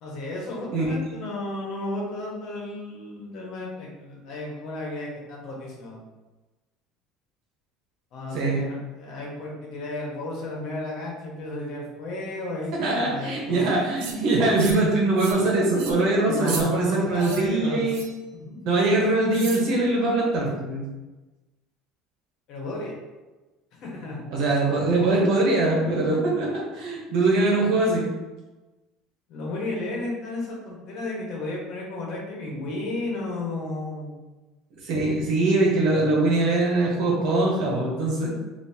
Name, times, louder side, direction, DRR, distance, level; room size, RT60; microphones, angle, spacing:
voice 1, 0.0-6.0 8.1-13.7 14.6-14.9 16.2-17.9 18.3-18.6 22.5-23.0 23.8-24.2 29.3-34.1, left 2 dB, 60° left, -2 dB, 1.2 m, -33 dB
voice 2, 12.8-18.0 18.6-20.9 24.3-28.0 34.8-38.3, right 2 dB, 65° right, -2 dB, 1.2 m, -22 dB
sound 1, 14.0-14.2 14.6-14.9 15.2-15.4 15.7-16.0 16.4-16.6 17.2-17.4 17.9-18.2 19.3-19.7, right 4 dB, 80° right, 0.6 m, -35 dB
4.0 x 2.8 x 2.8 m, 1.2 s
cardioid pair, 125°, 0 cm